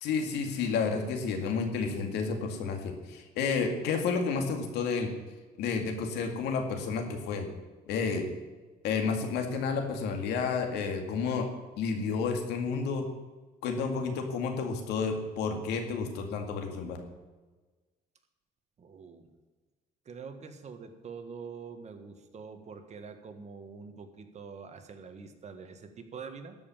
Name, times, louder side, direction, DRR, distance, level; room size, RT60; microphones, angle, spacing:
voice 1, 0.0-5.1 5.6-7.5 7.9-8.3 8.8-11.5 11.8-13.0 13.6-17.0, left 5 dB, 85° left, 4 dB, 2.1 m, -31 dB
voice 2, 18.8-19.3 20.0-26.6, right 5 dB, 40° right, 7 dB, 1.6 m, -45 dB
13.0 x 5.6 x 8.8 m, 1.3 s
cardioid pair, 110°, 17 cm